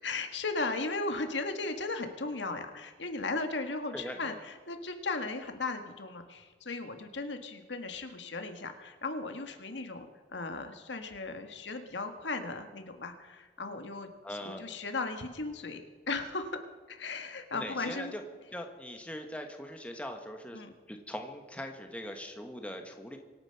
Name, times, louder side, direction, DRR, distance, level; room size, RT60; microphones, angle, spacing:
voice 1, 0.0-14.1 14.4-16.6 16.9-18.1 20.5-20.7, left 3 dB, 85° left, 6 dB, 1.6 m, -36 dB
voice 2, 3.9-4.4 14.2-14.6 17.5-18.2 18.5-20.6 20.9-23.2, equal, 5° left, 4 dB, 1.3 m, -41 dB
24.5 x 9.0 x 5.8 m, 1.4 s
head